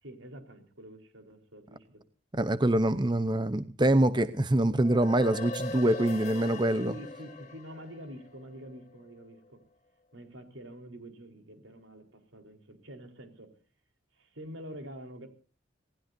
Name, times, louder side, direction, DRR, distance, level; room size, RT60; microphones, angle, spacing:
voice 1, 0.0-2.0 4.3-4.4 6.8-9.6 10.1-13.5 14.1-15.3, equal, 80° right, 5 dB, 4.3 m, -46 dB
voice 2, 2.3-6.9, right 1 dB, 25° right, 12 dB, 0.8 m, -25 dB
sound 1, 4.7-9.2, left 3 dB, 35° left, 2.3 m, -41 dB
26.5 x 19.0 x 2.7 m, 0.39 s
head